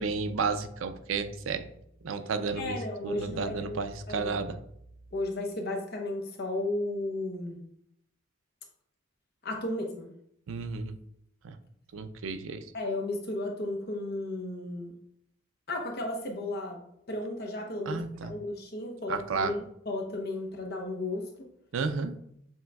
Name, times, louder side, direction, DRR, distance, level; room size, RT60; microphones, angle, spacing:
voice 1, 0.0-1.7 2.0-4.6 10.5-10.9 11.4-11.6 11.9-12.6 17.9-18.3 19.1-19.6 21.7-22.1, right 4 dB, 90° right, 10 dB, 0.4 m, -32 dB
voice 2, 2.6-3.8 4.1-4.4 5.1-7.6 9.4-10.1 12.7-14.9 15.7-16.8 17.1-21.2, left 2 dB, 55° left, 2 dB, 0.9 m, -34 dB
7.2 x 3.1 x 2.3 m, 0.74 s
head